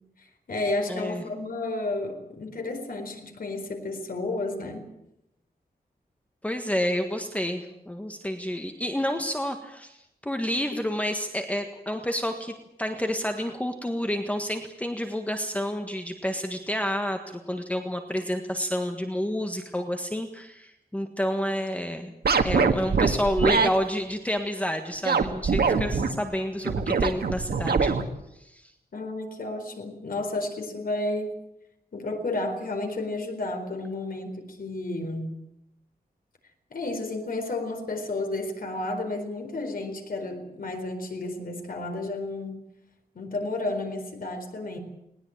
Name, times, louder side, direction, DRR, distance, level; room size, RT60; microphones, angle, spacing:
voice 1, 0.2-4.9 25.7-26.2 28.9-31.4 31.9-35.4 36.7-42.6 43.1-44.8, left 2 dB, 65° left, 5 dB, 4.3 m, -32 dB
voice 2, 0.9-1.2 6.4-22.1 22.4-27.9 28.3-28.7, equal, 10° left, 5 dB, 1.5 m, -29 dB
sound 1, 22.2-23.7 25.0-26.1 26.6-28.0, right 5 dB, 80° right, 1.7 m, -23 dB
20.0 x 19.5 x 8.8 m, 0.83 s
wide cardioid pair, 155°, 16 cm